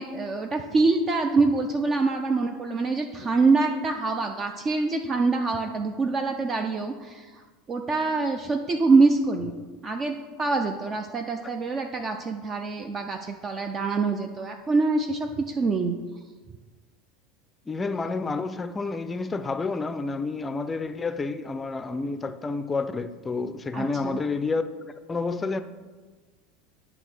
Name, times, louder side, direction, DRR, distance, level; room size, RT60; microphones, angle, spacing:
voice 1, 0.0-9.5 9.8-16.0 23.7-24.2, right 3 dB, 30° right, 0.5 m, -25 dB
voice 2, 17.7-25.6, left 3 dB, 20° left, 0.5 m, -29 dB
8.6 x 2.9 x 6.2 m
hypercardioid pair, 80°, 0 cm